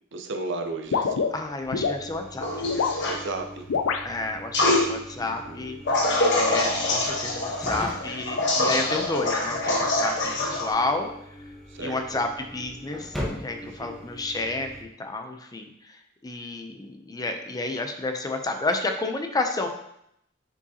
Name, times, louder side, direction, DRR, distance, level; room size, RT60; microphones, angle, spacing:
voice 1, 0.1-1.3 3.0-3.7 5.2-5.7 11.7-12.0 13.6-14.0, right 3 dB, 65° right, 5 dB, 0.7 m, -34 dB
sound 1, 0.9-2.0 2.6-3.0 3.7-4.1, left 5 dB, 85° left, 0.4 m, -25 dB
voice 2, 1.3-2.7 4.0-5.8 6.3-11.1 11.8-13.1 13.4-14.7 15.0-15.7 16.2-19.7, left 2 dB, 20° left, 5 dB, 0.5 m, -30 dB
sound 2, 1.6-14.8, left 1 dB, ahead, 1.1 m, -41 dB
sound 3, 2.4-3.2 4.5-4.8 5.9-10.7, left 2 dB, 60° left, 1.1 m, -25 dB
6.8 x 4.9 x 2.8 m, 0.76 s
head